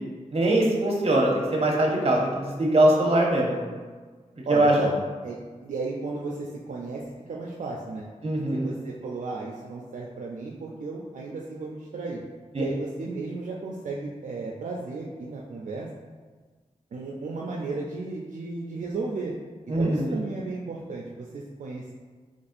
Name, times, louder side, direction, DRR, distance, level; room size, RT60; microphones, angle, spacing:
voice 1, 0.3-3.6 4.5-4.7 8.2-8.7 12.5-12.6 19.7-20.2, right 1 dB, 50° right, -1 dB, 0.8 m, -22 dB
voice 2, 4.4-7.0 7.3-8.1 8.5-12.2 12.6-15.9 16.9-19.3 19.7-21.9, right 3 dB, 70° right, -2 dB, 0.4 m, -34 dB
4.1 x 3.0 x 2.6 m, 1.4 s
wide cardioid pair, 75°, 13 cm